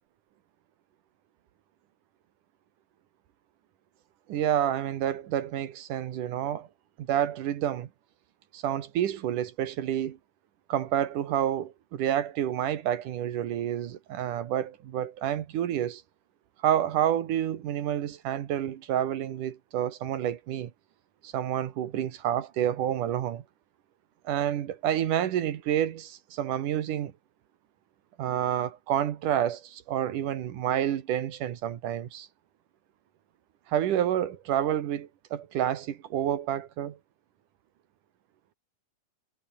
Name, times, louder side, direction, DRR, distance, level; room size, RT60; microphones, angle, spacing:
voice 1, 4.3-6.7 7.0-7.9 8.5-10.2 10.7-16.0 16.6-20.7 21.2-23.4 24.2-27.1 28.2-32.3 33.7-37.0, right 10 dB, 70° right, 2.9 m, -29 dB
omnidirectional pair, 3.9 m